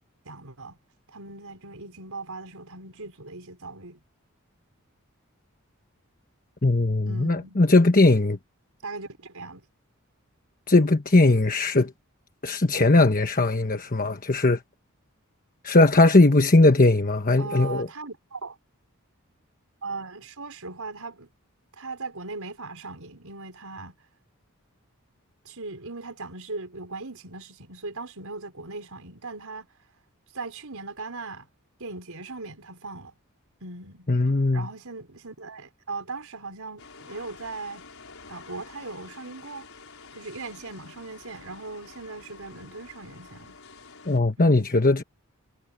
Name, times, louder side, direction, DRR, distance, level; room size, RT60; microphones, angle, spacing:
voice 1, 0.2-0.8 1.1-4.0 7.1-7.6 8.8-9.6 17.4-18.6 19.8-21.3 21.8-23.9 25.4-29.7 30.3-31.5 31.8-33.1 33.6-34.1 34.5-37.8 38.3-39.7 40.1-43.6 44.4-44.7, right 3 dB, 80° right, 4.8 m, -39 dB
voice 2, 6.6-8.4 10.7-11.9 12.4-14.6 15.6-17.9 34.1-34.7 44.1-45.0, left 2 dB, 40° left, 1.2 m, -19 dB
sound 1, 36.8-44.2, left 4 dB, 70° left, 5.0 m, -48 dB
head